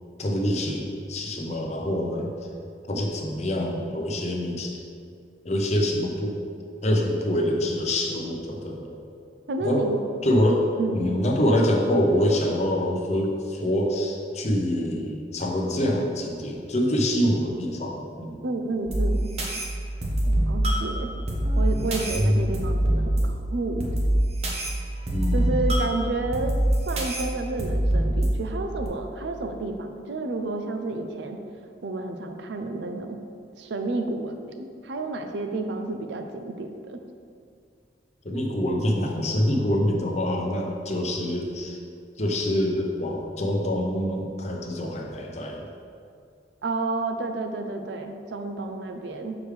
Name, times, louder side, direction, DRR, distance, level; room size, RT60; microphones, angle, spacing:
voice 1, 0.2-2.3 2.9-4.7 5.4-6.4 6.8-9.0 9.6-18.4 25.1-25.4 38.2-41.8 42.2-45.7, equal, 40° left, 0 dB, 0.7 m, -25 dB
voice 2, 9.5-10.0 10.8-11.1 18.4-19.3 20.2-21.1 21.5-23.9 25.3-26.5 26.9-31.4 31.8-33.2 33.6-37.0 46.6-49.4, right 2 dB, 80° right, 5 dB, 0.5 m, -30 dB
sound 1, 18.9-28.9, right 1 dB, 35° right, 0.9 m, -25 dB
6.1 x 4.8 x 3.3 m, 2.3 s
head